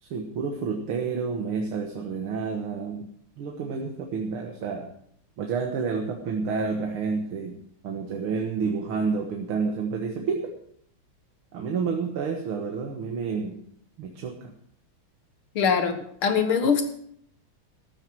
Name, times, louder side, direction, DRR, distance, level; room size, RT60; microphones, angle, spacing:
voice 1, 0.0-3.1 3.4-4.9 5.4-7.6 7.8-10.6 11.5-13.6 14.0-14.5, right 5 dB, 90° right, 3 dB, 2.2 m, -29 dB
voice 2, 15.6-16.9, left 6 dB, 85° left, 7 dB, 2.4 m, -23 dB
14.5 x 12.5 x 4.6 m, 0.65 s
omnidirectional pair, 2.3 m